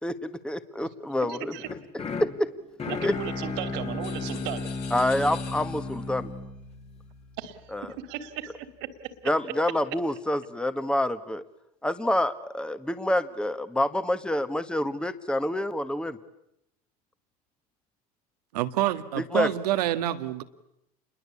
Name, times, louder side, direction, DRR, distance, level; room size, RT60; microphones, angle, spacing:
voice 1, 0.0-1.5 2.2-2.5 3.0-3.1 4.9-6.3 7.7-7.9 9.2-11.4 11.8-16.2 19.2-19.5, left 1 dB, 5° left, 11 dB, 1.5 m, -27 dB
voice 2, 1.3-1.7 2.9-4.7 7.4-7.6 8.0-8.9, right 9 dB, 70° right, 10 dB, 2.9 m, -36 dB
sound 1, 1.6-7.7, left 3 dB, 35° left, 2.8 m, -35 dB
sound 2, 4.0-6.2, left 9 dB, 65° left, 3.7 m, -45 dB
voice 3, 18.5-20.4, right 13 dB, 85° right, 10 dB, 1.7 m, -27 dB
28.0 x 22.0 x 8.5 m, 0.81 s
supercardioid pair, 90°, 20 cm